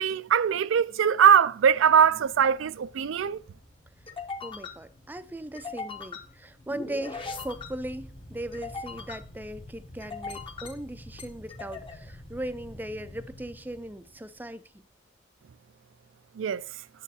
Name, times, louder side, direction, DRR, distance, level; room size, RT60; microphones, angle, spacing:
voice 1, 0.0-3.4 16.4-16.6, right 8 dB, 75° right, 0.4 m, -21 dB
sound 1, 1.7-14.5, left 3 dB, 25° left, 0.8 m, -42 dB
voice 2, 4.4-14.7, right 1 dB, 10° right, 0.4 m, -38 dB
9.4 x 7.0 x 2.8 m
head